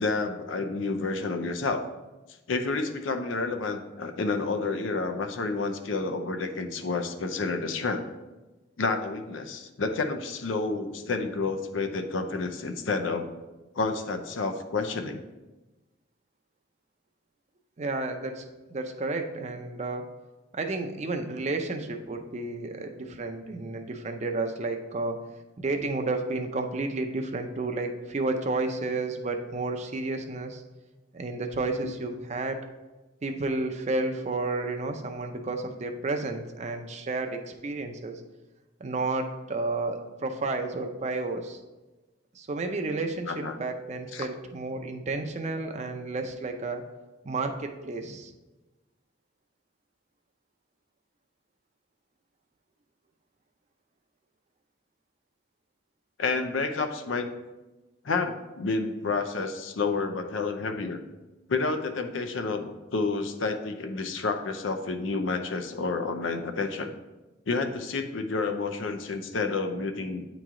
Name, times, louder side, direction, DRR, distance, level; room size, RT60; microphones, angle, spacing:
voice 1, 0.0-1.9 2.5-8.1 8.8-13.3 13.8-15.2 31.8-31.9 43.3-43.6 44.1-44.3 56.2-57.3 58.0-61.0 61.5-66.9 67.5-70.3, left 3 dB, 85° left, 7 dB, 0.6 m, -30 dB
voice 2, 17.8-18.4 18.7-20.0 20.5-25.1 25.6-30.6 31.1-32.6 33.2-38.2 38.8-41.6 42.4-46.8 47.2-48.3, right 3 dB, 35° right, 5 dB, 0.5 m, -31 dB
9.0 x 3.1 x 3.7 m, 1.1 s
head